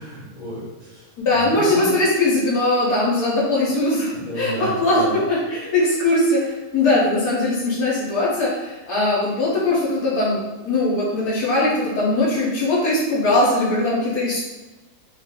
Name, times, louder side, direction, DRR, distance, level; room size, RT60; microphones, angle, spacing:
voice 1, 0.0-1.1 1.3-2.0 4.1-5.2, right 1 dB, 35° left, -10 dB, 0.8 m, -31 dB
voice 2, 1.2-14.4, left 2 dB, 80° left, -6 dB, 1.3 m, -20 dB
3.1 x 2.4 x 3.5 m, 1.1 s
omnidirectional pair, 1.6 m